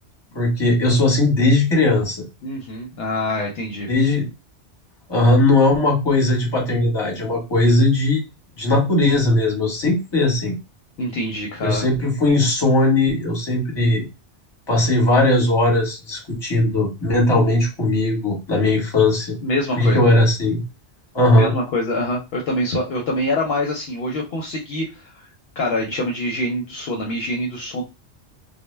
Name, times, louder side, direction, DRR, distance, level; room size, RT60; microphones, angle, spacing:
voice 1, 0.3-2.2 3.9-4.3 5.1-8.2 8.6-10.5 11.6-14.0 14.7-19.3 19.8-20.6 21.1-21.5, left 2 dB, 25° left, -1 dB, 0.9 m, -18 dB
voice 2, 2.4-3.9 11.0-11.8 19.4-20.1 21.3-27.8, left 1 dB, 65° left, 0 dB, 0.7 m, -25 dB
2.1 x 2.1 x 3.1 m, 0.28 s
omnidirectional pair, 1.2 m